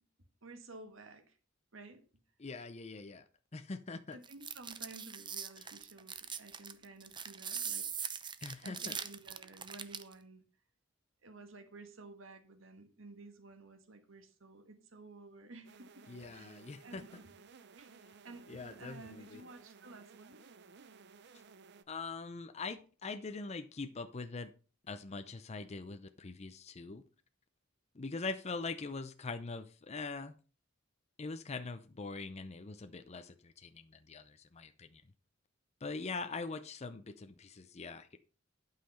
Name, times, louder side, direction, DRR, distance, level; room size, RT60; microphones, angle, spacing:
voice 1, 0.4-1.4 1.7-2.0 4.1-7.9 8.6-10.4 11.2-16.1 16.3-17.3 17.8-18.0 18.2-20.4, right 3 dB, 75° right, 1.7 m, -53 dB
voice 2, 2.4-3.2 3.5-4.2 8.4-9.0 16.1-17.0 18.5-19.4 21.9-24.5 24.8-27.0 27.9-30.3 31.2-35.0 35.8-38.2, left 3 dB, 35° left, 0.6 m, -43 dB
sound 1, 4.2-10.1, right 7 dB, 25° right, 0.7 m, -41 dB
sound 2, 15.6-21.8, right 5 dB, 60° right, 0.7 m, -58 dB
11.5 x 5.7 x 5.6 m
head